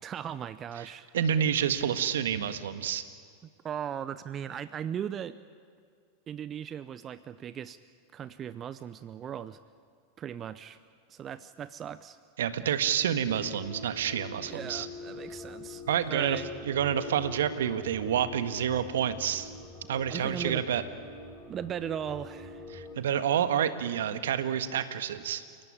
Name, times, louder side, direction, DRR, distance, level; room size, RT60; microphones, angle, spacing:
voice 1, 0.0-1.1 3.6-5.4 6.3-7.8 8.1-9.6 10.2-10.8 11.1-12.2 14.4-15.8 16.1-16.5 20.1-20.6 21.5-22.7, right 9 dB, 30° right, 15 dB, 0.7 m, -38 dB
voice 2, 1.1-3.0 12.4-14.9 15.9-16.4 16.7-19.5 19.9-20.8 22.7-25.4, right 9 dB, 65° right, 10 dB, 1.6 m, -28 dB
sound 1, 13.3-23.0, left 2 dB, 10° left, 4.8 m, -45 dB
30.0 x 18.0 x 9.9 m, 2.2 s
figure-of-eight pair, 90°, 0 cm